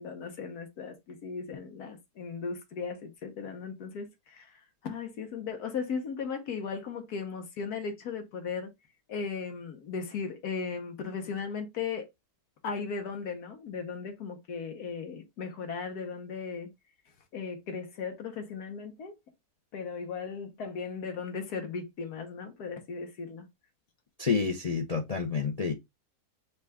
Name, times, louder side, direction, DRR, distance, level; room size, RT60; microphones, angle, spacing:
voice 1, 0.0-4.5 4.8-8.7 9.1-12.1 12.6-16.7 17.3-19.1 19.7-23.5, left 5 dB, 85° left, 1.5 m, -37 dB
voice 2, 24.2-25.7, left 5 dB, 50° left, 0.4 m, -29 dB
5.5 x 2.4 x 3.4 m
omnidirectional pair, 1.6 m